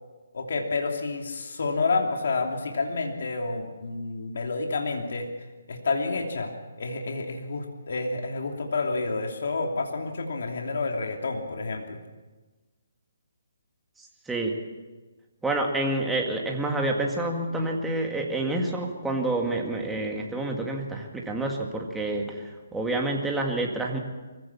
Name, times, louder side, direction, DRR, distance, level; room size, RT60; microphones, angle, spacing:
voice 1, 0.3-5.3 5.7-6.5 6.8-12.0, left 3 dB, 60° left, 2 dB, 2.9 m, -29 dB
voice 2, 15.4-22.4 22.7-24.0, right 2 dB, 5° right, 0 dB, 2.0 m, -28 dB
24.0 x 16.0 x 7.2 m, 1.2 s
hypercardioid pair, 165°, 0 cm